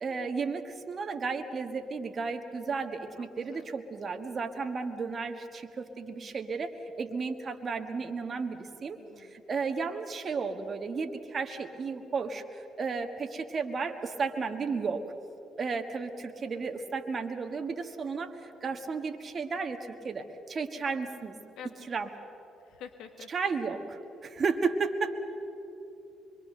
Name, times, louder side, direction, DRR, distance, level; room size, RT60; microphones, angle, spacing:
voice 1, 0.0-6.7 7.0-15.0 15.6-21.4 21.9-22.1 23.3-25.1, right 4 dB, 45° right, 6 dB, 1.5 m, -33 dB
voice 2, 3.2-3.7 8.9-9.4 16.4-16.7 21.6-21.9 22.6-23.3, left 7 dB, 70° left, 7 dB, 1.6 m, -48 dB
25.0 x 23.0 x 6.7 m, 2.9 s
hypercardioid pair, 55°, 0 cm